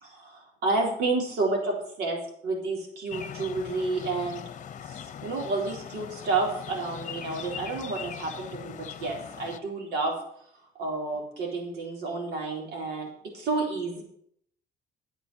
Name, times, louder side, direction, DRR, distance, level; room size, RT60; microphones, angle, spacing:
voice 1, 0.0-4.4 4.9-10.2 10.8-13.1 13.3-14.0, right 3 dB, 75° right, 0 dB, 4.1 m, -30 dB
sound 1, 3.1-9.6, left 8 dB, 45° left, 0.9 m, -41 dB
11.0 x 8.1 x 7.0 m, 0.68 s
cardioid pair, 110°, 17 cm